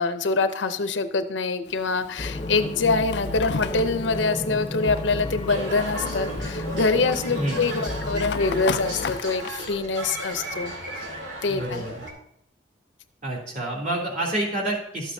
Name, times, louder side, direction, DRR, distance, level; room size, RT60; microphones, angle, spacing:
voice 1, 0.0-11.0 11.4-11.9, left 3 dB, 90° left, 10 dB, 0.7 m, -25 dB
Fire, 1.6-9.5, left 7 dB, 65° left, 0.3 m, -37 dB
sound 1, 2.2-9.1, left 1 dB, 30° left, 0.6 m, -32 dB
sound 2, 5.5-12.1, equal, 80° right, 2.3 m, -35 dB
voice 2, 11.5-12.0 13.2-15.1, right 1 dB, 45° right, -3 dB, 2.9 m, -28 dB
12.0 x 8.2 x 2.7 m, 0.75 s
head